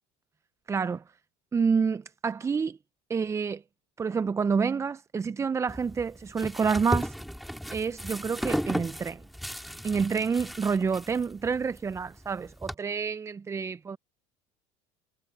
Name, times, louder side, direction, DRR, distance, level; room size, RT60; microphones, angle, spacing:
voice 1, 0.7-1.0 1.5-2.8 3.1-3.6 4.0-7.1 7.7-9.2 9.8-14.0, right 5 dB, 20° right, 0.4 m, -28 dB
sound 1, 5.7-12.7, equal, ahead, 4.1 m, -35 dB
supercardioid pair, 105°, 16 cm